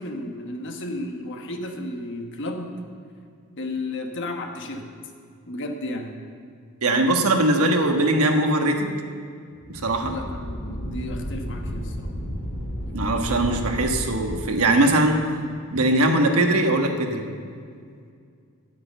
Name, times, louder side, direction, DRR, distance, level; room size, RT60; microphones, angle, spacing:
voice 1, 0.0-2.8 3.6-4.9 5.5-6.2 10.0-12.1, left 1 dB, 55° left, 3 dB, 1.3 m, -33 dB
voice 2, 6.8-8.9 9.7-10.1 12.9-15.2 15.7-17.2, right 1 dB, 70° right, 4 dB, 1.3 m, -21 dB
sound 1, 9.6-14.4, equal, 80° left, 2.9 m, -32 dB
9.3 x 9.1 x 7.9 m, 2.3 s
head